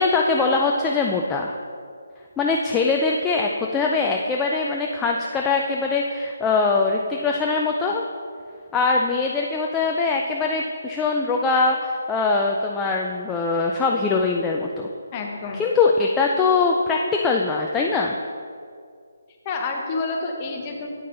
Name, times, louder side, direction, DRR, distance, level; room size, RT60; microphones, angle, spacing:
voice 1, 0.0-1.6 2.4-8.0 8.7-14.9 15.6-18.1, left 4 dB, 10° left, 0 dB, 0.4 m, -22 dB
voice 2, 15.1-15.6 19.4-20.9, left 3 dB, 25° left, 1 dB, 1.1 m, -28 dB
8.5 x 6.5 x 3.9 m, 2.2 s
figure-of-eight pair, 155°, 0 cm